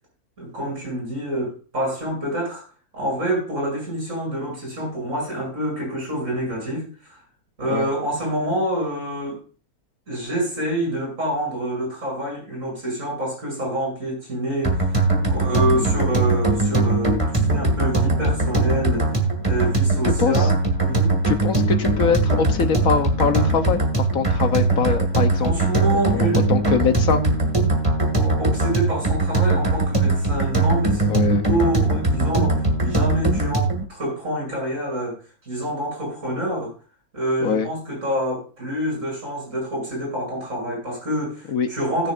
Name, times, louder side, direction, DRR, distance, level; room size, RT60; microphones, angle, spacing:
voice 1, 0.4-2.6 2.9-7.2 7.6-9.4 10.1-15.0 15.3-19.1 19.4-21.2 25.4-26.4 28.2-35.2 35.5-36.7 37.1-42.1, right 1 dB, 55° right, -2 dB, 7.6 m, -27 dB
sound 1, 14.6-33.8, right 2 dB, 20° right, 1.9 m, -20 dB
voice 2, 15.6-16.0 20.0-20.5 21.3-25.5 26.1-27.2 31.1-31.4 37.4-37.7 41.5-41.7, left 6 dB, 70° left, 8 dB, 1.4 m, -23 dB
19.5 x 6.9 x 2.5 m, 0.34 s
omnidirectional pair, 1.6 m